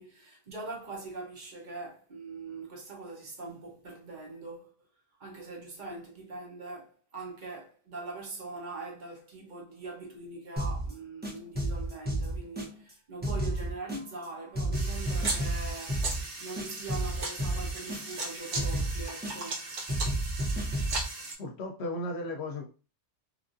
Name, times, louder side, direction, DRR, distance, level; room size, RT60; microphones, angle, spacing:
voice 1, 0.0-4.7 5.2-19.7, right 3 dB, 45° right, 0.9 m, -42 dB
sound 1, 10.6-10.9 11.2-12.9 13.2-14.3 14.5-16.3 16.6-18.3 18.5-19.6 19.9-21.1, right 1 dB, 10° right, 0.6 m, -32 dB
sound 2, 14.7-21.3, right 2 dB, 90° right, 1.2 m, -37 dB
voice 2, 21.4-22.6, left 1 dB, 70° left, 0.8 m, -35 dB
3.0 x 2.5 x 2.5 m
omnidirectional pair, 1.2 m